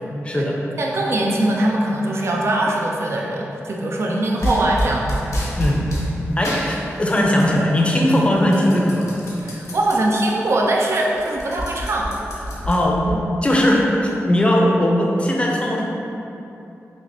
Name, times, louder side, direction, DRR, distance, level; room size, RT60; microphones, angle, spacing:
voice 1, 0.2-0.6 5.6-5.8 6.4-9.2 12.7-15.8, left 1 dB, 20° left, -2 dB, 0.5 m, -19 dB
voice 2, 0.8-5.3 9.4-12.1, right 1 dB, 55° right, -1 dB, 0.4 m, -21 dB
sound 1, 4.4-6.1 6.4-7.6 7.9-10.0 10.4-10.5 10.7-13.1, equal, 80° left, 0.8 m, -27 dB
5.9 x 2.0 x 2.6 m, 2.9 s
cardioid pair, 65°, 5 cm